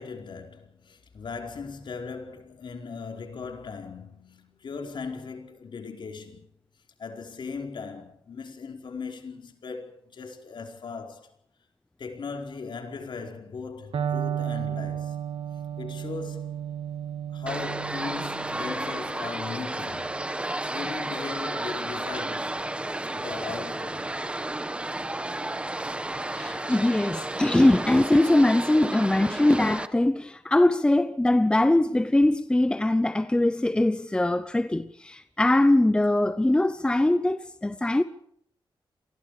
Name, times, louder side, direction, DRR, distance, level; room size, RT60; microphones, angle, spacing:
voice 1, 0.0-6.5 7.0-11.3 12.0-15.2 15.8-16.6 17.3-20.2 20.4-22.6 23.1-24.1 26.3-27.0, left 5 dB, 60° left, 4.7 m, -38 dB
Electric guitar, 13.9-21.8, right 9 dB, 90° right, 2.9 m, -34 dB
sound 1, 17.5-29.9, right 1 dB, 10° right, 1.3 m, -32 dB
voice 2, 26.3-38.0, left 1 dB, 10° left, 0.9 m, -22 dB
29.5 x 23.0 x 5.0 m
wide cardioid pair, 160°, 9 cm